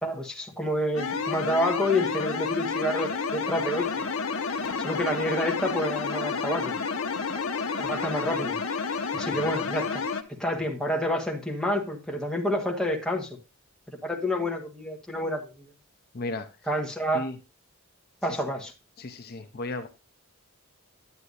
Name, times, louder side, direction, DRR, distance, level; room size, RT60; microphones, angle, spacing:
voice 1, 0.0-4.0 4.8-6.7 7.8-8.6 9.1-10.0 10.4-13.3 14.0-15.6 16.7-17.3 18.2-18.7, left 1 dB, 5° left, 1.3 m, -28 dB
sound 1, 1.0-10.2, left 5 dB, 75° left, 0.9 m, -30 dB
voice 2, 16.1-16.5 17.1-17.4 18.3-18.4 19.0-19.9, left 2 dB, 45° left, 0.6 m, -35 dB
9.7 x 8.9 x 2.6 m
head